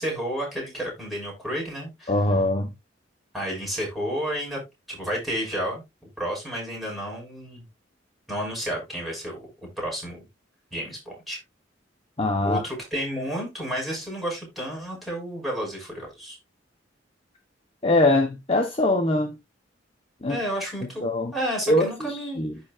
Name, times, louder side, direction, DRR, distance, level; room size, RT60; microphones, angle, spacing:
voice 1, 0.0-2.1 3.3-4.6 4.9-5.8 6.2-7.6 8.3-10.3 10.7-11.4 12.4-16.4 20.3-21.1 21.3-22.4, equal, ahead, 5.8 m, -31 dB
voice 2, 2.1-2.7 12.2-12.7 17.8-19.4 20.2-20.4 21.0-21.3 21.7-22.5, left 2 dB, 30° left, 1.1 m, -22 dB
14.0 x 4.7 x 2.5 m
head